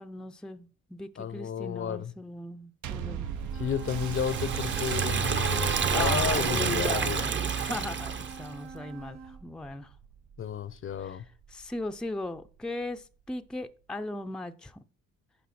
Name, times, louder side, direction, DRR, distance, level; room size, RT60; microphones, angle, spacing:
voice 1, 0.0-3.3 5.9-9.9 11.0-11.2 11.5-14.8, left 2 dB, 5° left, 0.5 m, -38 dB
voice 2, 1.2-2.1 3.5-7.2 10.4-11.3, left 8 dB, 45° left, 0.6 m, -32 dB
sound 1, 2.8-11.6 12.4-12.5, right 9 dB, 75° right, 0.7 m, -39 dB
sound 2, 3.2-9.4, right 6 dB, 60° right, 3.1 m, -44 dB
Liquid, 3.8-8.5, right 5 dB, 40° right, 0.8 m, -29 dB
10.0 x 5.0 x 4.3 m
cardioid pair, 90°, 30 cm